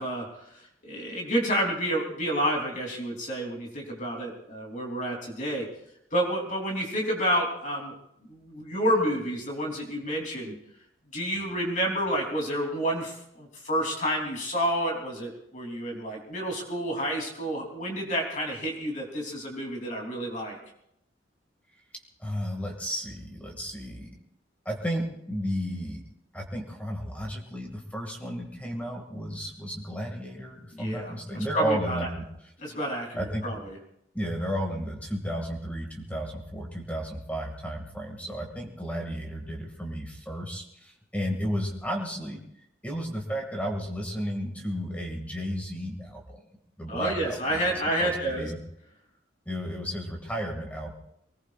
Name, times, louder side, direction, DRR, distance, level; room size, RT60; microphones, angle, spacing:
voice 1, 0.0-5.7 6.1-7.9 8.3-10.5 11.1-20.6 30.7-32.1 32.6-33.8 46.9-48.5, equal, 40° left, 0 dB, 3.4 m, -29 dB
voice 2, 22.2-24.2 24.7-26.0 26.3-32.2 33.1-33.6 34.1-42.4 42.8-46.2 46.8-48.6 49.5-50.9, equal, 10° left, 0 dB, 2.2 m, -33 dB
24.0 x 19.5 x 2.5 m, 0.77 s
head